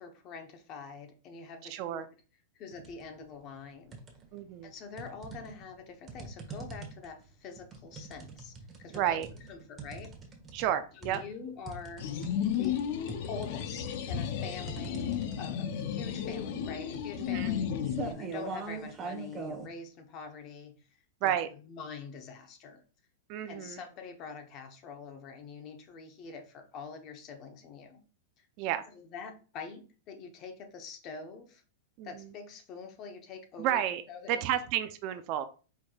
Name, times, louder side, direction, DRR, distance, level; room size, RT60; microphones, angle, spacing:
voice 1, 0.0-2.0 2.5-4.0 4.6-9.2 9.5-10.1 11.0-12.1 12.6-12.8 13.3-17.7 18.0-20.7 21.2-22.8 23.5-28.0 28.4-28.5 28.9-31.6 32.0-34.6, left 5 dB, 35° left, 5 dB, 0.9 m, -45 dB
voice 2, 1.7-2.1 4.3-4.7 8.9-9.3 10.5-11.2 17.2-17.5 21.2-21.5 23.3-23.8 28.6-28.8 32.0-32.3 33.6-34.0 34.3-35.5, right 11 dB, 45° right, 10 dB, 0.5 m, -31 dB
sound 1, 2.7-3.1 3.5-4.4 5.0-19.7, right 4 dB, 20° right, 1.1 m, -43 dB
sound 2, 12.0-18.1, left 8 dB, 60° left, 0.6 m, -33 dB
4.8 x 4.3 x 2.3 m, 0.35 s
supercardioid pair, 150°, 0 cm